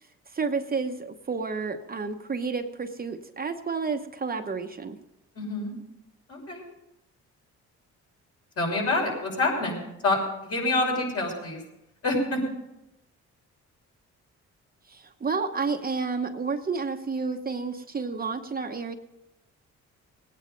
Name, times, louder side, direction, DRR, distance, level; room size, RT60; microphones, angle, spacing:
voice 1, 0.3-5.0 14.9-19.0, right 4 dB, 30° right, 5 dB, 1.0 m, -30 dB
voice 2, 5.3-5.7 6.3-6.6 8.6-11.6 12.0-12.4, left 2 dB, 50° left, -1 dB, 6.0 m, -27 dB
18.5 x 9.6 x 5.3 m, 0.90 s
cardioid pair, 90°, 30 cm